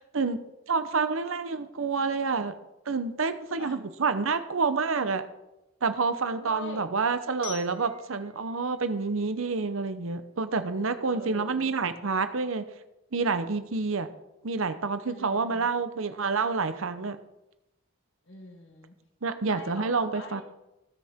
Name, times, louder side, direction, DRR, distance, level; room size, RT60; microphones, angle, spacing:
voice 1, 0.0-2.6 2.9-5.2 5.8-12.7 13.1-14.1 14.4-17.2 19.2-20.4, right 4 dB, 75° right, 11 dB, 0.8 m, -28 dB
voice 2, 6.4-6.8 11.1-11.7 15.0-15.7 18.3-18.9 19.4-20.4, left 2 dB, 60° left, 4 dB, 1.5 m, -43 dB
Glockenspiel, 7.4-10.3, left 12 dB, 80° left, 3.1 m, -48 dB
17.5 x 6.5 x 3.6 m, 0.92 s
head